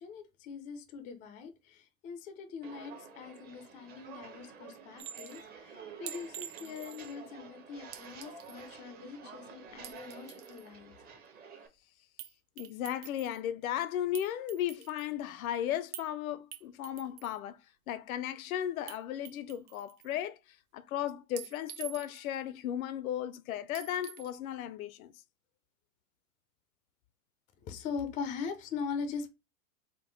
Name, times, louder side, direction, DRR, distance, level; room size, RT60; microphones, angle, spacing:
voice 1, 0.0-10.9 27.6-29.3, left 5 dB, 20° left, 0.4 m, -41 dB
Walk footsteps, 2.6-11.7, right 5 dB, 20° right, 0.6 m, -50 dB
Chink clink, 5.0-5.4 6.1-7.2 7.9-8.7 9.7-10.7 12.2-12.3 12.6-13.4 14.1-15.1 15.9-16.1 16.5-17.4 18.9-19.0 19.3-20.1 21.4-22.3 23.7-24.3, right 11 dB, 50° right, 0.9 m, -46 dB
voice 2, 12.6-17.6 17.9-20.4 20.7-25.1, left 11 dB, 70° left, 0.5 m, -35 dB
3.7 x 2.6 x 3.8 m
hypercardioid pair, 125°, 44 cm